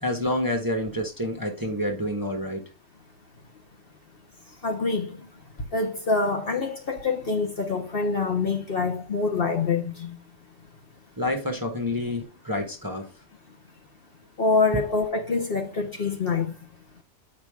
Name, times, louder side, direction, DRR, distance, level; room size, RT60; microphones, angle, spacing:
voice 1, 0.0-2.6 11.2-13.1, left 1 dB, 15° right, 1.0 m, -28 dB
voice 2, 4.5-5.4 5.7-10.2 14.4-16.7, left 4 dB, 45° left, 1.0 m, -26 dB
8.0 x 5.2 x 3.5 m
omnidirectional pair, 1.5 m